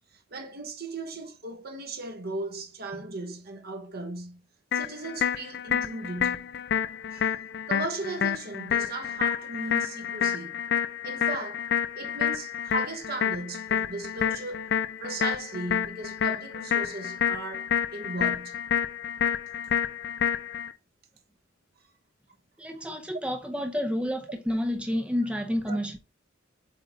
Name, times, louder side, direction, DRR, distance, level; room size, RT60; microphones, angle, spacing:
voice 1, 0.3-4.4 4.7-6.5 7.1-7.3 7.7-10.5 11.0-11.6 11.9-14.7 15.0-18.6 25.7-25.8, right 2 dB, 50° right, 1.2 m, -37 dB
sound 1, 4.7-20.7, left 8 dB, 55° left, 0.5 m, -29 dB
voice 2, 22.6-26.0, equal, 5° right, 0.7 m, -29 dB
7.8 x 3.5 x 3.9 m
head